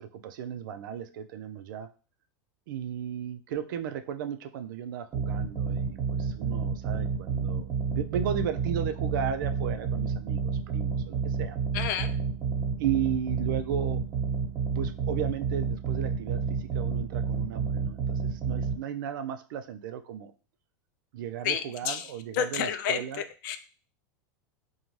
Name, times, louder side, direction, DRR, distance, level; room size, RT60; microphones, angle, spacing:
voice 1, 0.0-1.9 2.7-11.6 12.8-14.0 14.7-20.3 21.1-23.2, right 9 dB, 75° right, 8 dB, 0.4 m, -35 dB
sound 1, 5.1-18.7, right 5 dB, 40° right, 1.0 m, -30 dB
voice 2, 11.7-12.1 21.4-22.0 22.4-23.0 23.4-23.6, left 8 dB, 65° left, 9 dB, 0.4 m, -29 dB
2.5 x 2.2 x 3.1 m, 0.36 s
hypercardioid pair, 115°, 11 cm